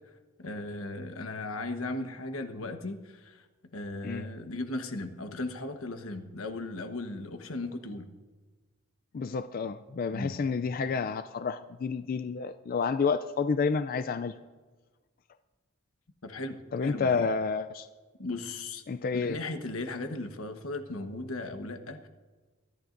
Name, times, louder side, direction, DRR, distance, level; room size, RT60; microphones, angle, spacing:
voice 1, 0.4-3.4 3.7-8.1 10.1-10.4 16.2-17.3 18.2-18.8 19.1-22.1, left 2 dB, 90° left, 6 dB, 1.2 m, -37 dB
voice 2, 9.1-14.3 16.7-17.9 18.9-19.4, left 5 dB, 45° left, 11 dB, 0.4 m, -30 dB
24.0 x 11.0 x 2.6 m, 1.3 s
head